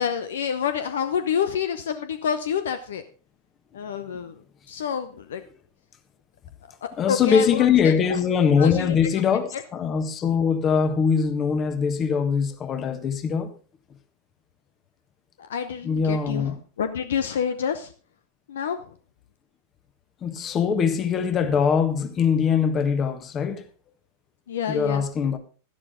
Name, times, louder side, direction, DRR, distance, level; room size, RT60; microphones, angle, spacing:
voice 1, 0.0-3.0 3.7-4.4 4.7-5.4 7.1-7.9 8.6-9.0 9.5-9.6 15.4-16.5 16.8-17.9 18.5-18.9 24.5-25.0, left 7 dB, 60° left, 0.8 m, -28 dB
voice 2, 7.0-13.5 15.8-16.6 20.2-23.6 24.7-25.4, left 6 dB, 25° left, 1.4 m, -22 dB
11.5 x 11.5 x 3.8 m
figure-of-eight pair, 90°, 0 cm